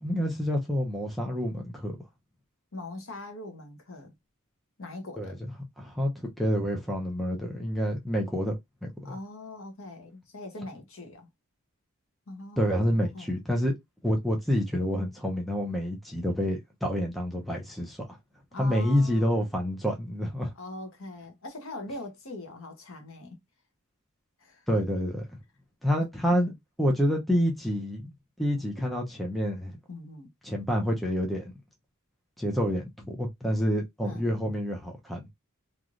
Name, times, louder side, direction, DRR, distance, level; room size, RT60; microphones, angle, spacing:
voice 1, 0.0-2.0 5.2-5.5 5.8-8.5 8.8-9.2 12.6-13.7 14.0-18.0 18.6-20.5 24.7-25.2 25.8-26.5 26.8-29.7 30.4-31.5 32.4-35.3, equal, ahead, 0.6 m, -28 dB
voice 2, 2.7-4.1 4.8-5.4 9.0-11.3 12.3-13.3 18.5-19.4 20.5-23.4 24.4-24.7 26.0-26.5 28.6-28.7 29.9-30.3 33.0-33.1 34.0-34.3, left 2 dB, 65° left, 0.9 m, -42 dB
3.1 x 2.5 x 2.4 m
head